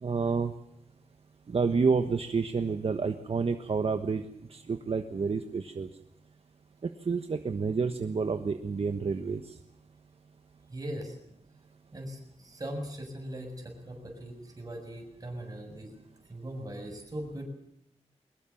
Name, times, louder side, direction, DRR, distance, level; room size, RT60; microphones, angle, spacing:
voice 1, 0.0-0.5 1.5-4.2 4.5-5.9 6.8-9.4, right 5 dB, 55° right, 8 dB, 1.3 m, -29 dB
voice 2, 10.7-11.1 11.9-15.9 16.3-17.5, right 1 dB, 30° right, 3 dB, 7.0 m, -40 dB
23.5 x 21.0 x 7.2 m, 0.76 s
wide cardioid pair, 115°, 12 cm